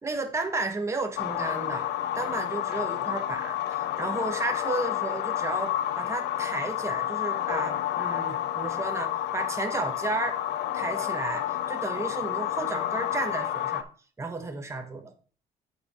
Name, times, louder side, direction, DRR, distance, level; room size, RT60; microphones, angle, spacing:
voice 1, 0.0-1.9 2.1-10.4 10.7-13.9 14.2-15.1, right 3 dB, 15° right, 5 dB, 1.3 m, -33 dB
sound 1, 1.2-13.8, left 12 dB, 85° left, 0.7 m, -30 dB
8.8 x 4.8 x 4.3 m, 0.40 s
cardioid pair, 110°, 17 cm